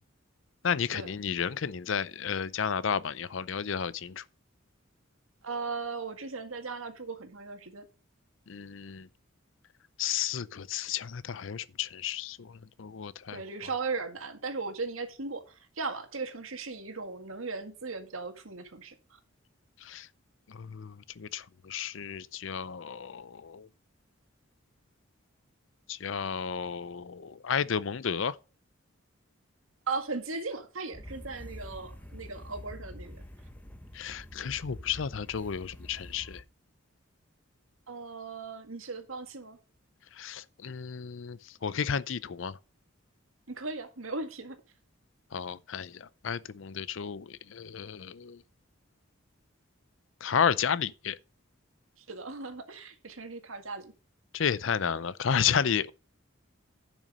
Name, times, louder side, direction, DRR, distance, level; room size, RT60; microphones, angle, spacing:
voice 1, 0.6-4.2 8.5-9.1 10.0-12.5 12.8-13.4 19.8-20.1 20.5-23.7 25.9-28.3 33.9-36.4 40.2-42.6 45.3-48.4 50.2-51.2 54.3-55.9, left 7 dB, 65° left, 0.5 m, -32 dB
voice 2, 5.4-7.9 13.3-19.0 29.9-33.2 37.9-39.6 43.5-44.6 52.0-53.9, right 4 dB, 90° right, 1.8 m, -37 dB
sound 1, 30.9-36.4, left 1 dB, 10° left, 1.0 m, -46 dB
10.5 x 6.1 x 5.3 m
head